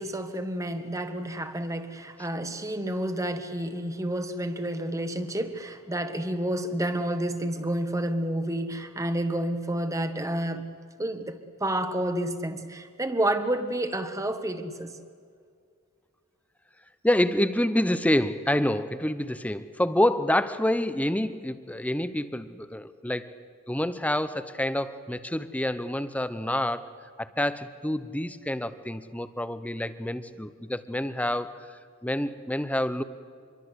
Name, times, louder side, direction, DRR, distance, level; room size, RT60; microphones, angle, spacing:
voice 1, 0.0-10.7 11.0-14.9, right 1 dB, 15° right, 1.3 m, -30 dB
voice 2, 17.0-23.3 23.7-26.9 27.2-33.0, left 1 dB, 5° left, 0.8 m, -27 dB
26.0 x 22.5 x 8.1 m
head